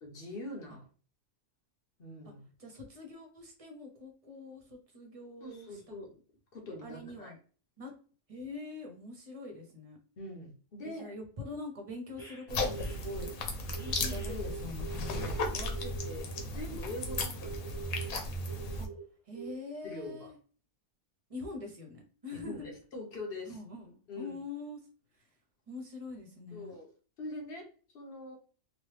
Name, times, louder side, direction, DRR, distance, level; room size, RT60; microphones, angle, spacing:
voice 1, 0.0-0.9 2.0-2.4 5.4-6.1 6.5-7.3 10.2-11.2 13.8-14.5 14.9-17.9 19.8-20.3 22.3-23.6 24.1-24.3 26.5-26.9 27.2-28.4, left 1 dB, 50° left, 1 dB, 1.0 m, -43 dB
voice 2, 2.6-6.0 6.8-7.4 7.8-7.9 8.3-10.0 10.8-13.3 14.0-15.4 18.8-18.9 19.3-20.4 21.3-22.7 23.4-24.8 25.1-25.3 25.7-26.7, left 3 dB, 40° right, 2 dB, 0.5 m, -44 dB
sound 1, 12.2-13.3 13.7-16.4 17.0-19.0 19.3-19.5, right 6 dB, ahead, 0.9 m, -45 dB
sound 2, 12.5-18.9, left 2 dB, 75° left, 1.1 m, -35 dB
3.0 x 2.3 x 3.2 m, 0.39 s
omnidirectional pair, 1.5 m